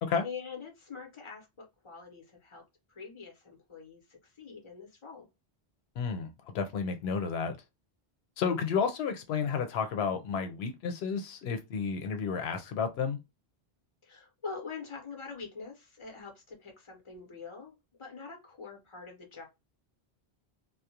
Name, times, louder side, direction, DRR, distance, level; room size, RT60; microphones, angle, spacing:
voice 1, 0.2-2.6 2.9-5.3 14.0-17.7 18.0-19.5, left 5 dB, 30° left, 0.9 m, -44 dB
voice 2, 6.0-6.3 6.5-7.6 8.4-13.2, left 6 dB, 85° left, 0.8 m, -31 dB
2.3 x 2.1 x 2.7 m
omnidirectional pair, 1.0 m